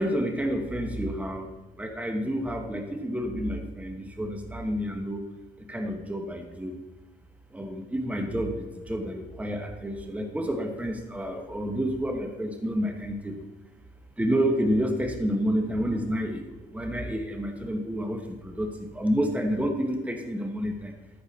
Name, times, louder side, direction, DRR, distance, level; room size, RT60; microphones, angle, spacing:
voice 1, 0.0-1.5 1.8-5.2 5.7-6.8 7.5-13.3 14.2-20.9, equal, 5° right, 4 dB, 1.2 m, -29 dB
13.5 x 6.8 x 4.2 m, 1.2 s
cardioid pair, 90°, 20 cm